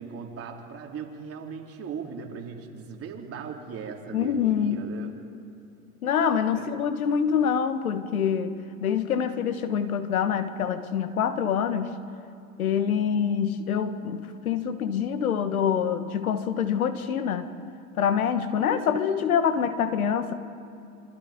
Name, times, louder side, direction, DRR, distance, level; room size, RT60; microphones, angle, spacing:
voice 1, 0.0-5.1 6.5-6.7, right 6 dB, 35° right, 0 dB, 3.8 m, -38 dB
voice 2, 4.1-4.8 6.0-12.0 12.6-17.5 18.0-20.3, left 7 dB, 85° left, 10 dB, 1.6 m, -25 dB
27.0 x 25.0 x 5.3 m, 2.8 s
hypercardioid pair, 95°, 42 cm